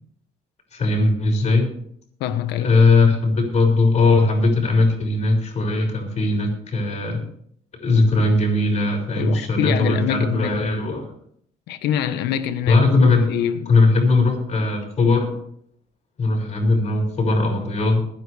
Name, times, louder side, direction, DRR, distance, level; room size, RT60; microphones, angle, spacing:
voice 1, 0.7-1.7 2.6-7.2 7.8-11.1 12.7-13.3 13.7-15.3 16.2-18.0, left 3 dB, 40° left, 6.4 m, -19 dB
voice 2, 2.2-2.8 9.2-10.6 11.7-12.8 13.2-13.8, left 10 dB, 85° left, 1.3 m, -25 dB
22.0 x 10.0 x 3.5 m
cardioid pair, 110°, 17 cm